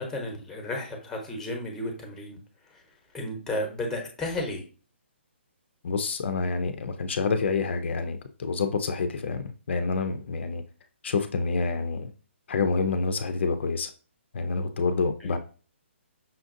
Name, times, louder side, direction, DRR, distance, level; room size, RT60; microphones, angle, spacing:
voice 1, 0.0-2.4 2.7-2.8 3.1-4.6 15.2-15.3, left 1 dB, 5° left, 1 dB, 0.9 m, -33 dB
voice 2, 5.8-10.6 11.0-12.1 12.5-13.9 14.3-15.4, left 4 dB, 65° left, 8 dB, 0.5 m, -27 dB
5.7 x 2.5 x 2.6 m, 0.38 s
hypercardioid pair, 150°, 7 cm